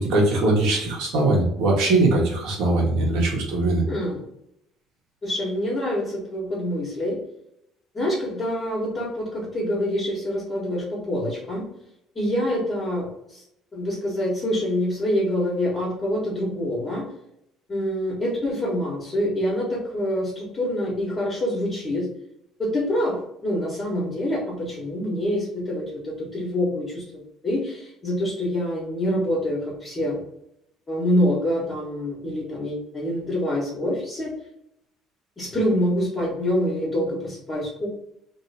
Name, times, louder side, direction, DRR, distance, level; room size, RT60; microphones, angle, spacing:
voice 1, 0.0-3.8, right 2 dB, 80° right, -3 dB, 1.5 m, -21 dB
voice 2, 3.9-4.2 5.2-7.2 7.9-11.6 12.1-13.4 13.7-17.1 17.7-22.1 22.6-30.2 30.9-34.3 35.4-37.9, left 1 dB, 20° left, -7 dB, 1.2 m, -26 dB
3.0 x 2.8 x 4.2 m, 0.79 s
cardioid pair, 170°, 0 cm